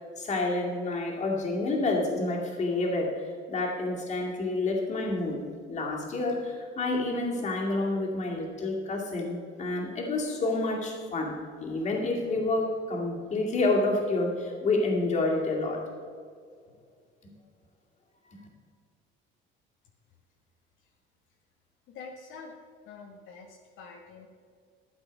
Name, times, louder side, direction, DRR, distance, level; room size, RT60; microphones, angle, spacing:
voice 1, 0.2-15.8 17.2-17.3 18.3-18.4, left 2 dB, 35° left, -1 dB, 2.3 m, -29 dB
voice 2, 21.9-22.6 22.8-24.3, left 4 dB, 70° left, 1 dB, 1.3 m, -46 dB
12.5 x 8.6 x 5.3 m, 2.1 s
cardioid pair, 145°, 21 cm